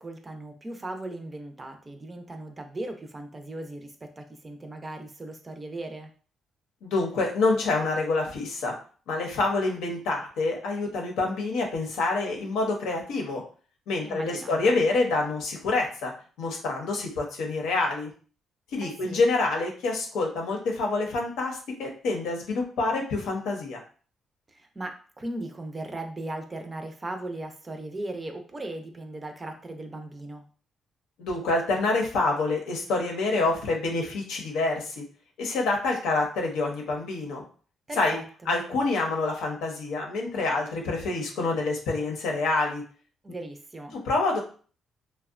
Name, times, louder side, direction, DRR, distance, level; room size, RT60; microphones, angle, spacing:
voice 1, 0.0-6.1 14.0-14.7 18.8-19.2 24.5-30.5 37.9-38.5 43.2-43.9, right 2 dB, 25° right, 5 dB, 0.4 m, -38 dB
voice 2, 6.8-8.7 9.1-13.4 13.9-16.1 16.4-18.1 18.7-23.8 31.2-35.0 35.4-37.4 38.0-38.2 38.5-42.8 43.9-44.4, left 3 dB, 90° left, 0 dB, 0.7 m, -27 dB
2.6 x 2.1 x 2.4 m, 0.41 s
cardioid pair, 90°, 0 cm